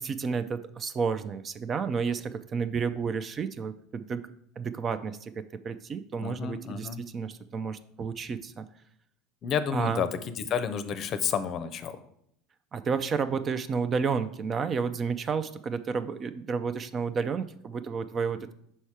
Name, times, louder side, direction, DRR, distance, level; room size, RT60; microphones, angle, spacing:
voice 1, 0.0-4.2 4.6-8.7 9.7-10.0 12.7-18.5, right 5 dB, 35° right, 12 dB, 0.4 m, -31 dB
voice 2, 6.2-7.0 9.4-10.1 10.5-12.0, left 7 dB, 45° left, 11 dB, 0.6 m, -30 dB
5.6 x 4.2 x 4.7 m, 0.71 s
supercardioid pair, 95°, 0 cm